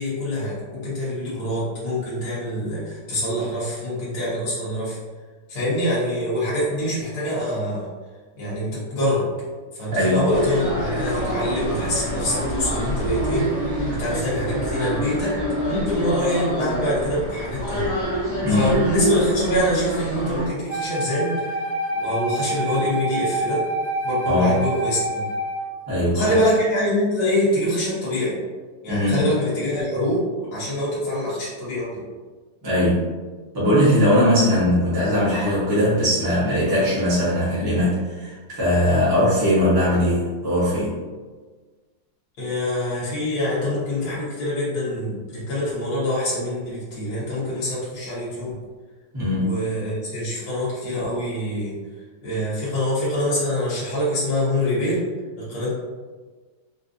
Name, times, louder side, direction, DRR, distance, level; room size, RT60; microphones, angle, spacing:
voice 1, 0.0-5.0 5.5-7.9 8.4-9.3 9.8-13.5 13.9-15.3 15.6-17.9 18.5-21.6 22.0-23.6 24.0-25.3 26.1-28.4 28.8-30.2 30.5-31.9 42.4-48.6 49.4-51.8 52.2-55.0 55.4-55.7, left 1 dB, 60° left, -8 dB, 1.7 m, -25 dB
voice 2, 9.9-10.3 18.4-18.7 24.3-24.6 25.9-26.3 28.9-29.2 32.6-33.1 33.5-40.9 49.1-49.6, left 1 dB, 15° right, -11 dB, 0.9 m, -20 dB
sound 1, 10.3-20.5, equal, 20° left, 0.9 m, -26 dB
Wind instrument woodwind instrument, 20.7-25.7, right 1 dB, 85° right, 1.7 m, -27 dB
4.5 x 2.3 x 2.6 m, 1.4 s
omnidirectional pair, 2.0 m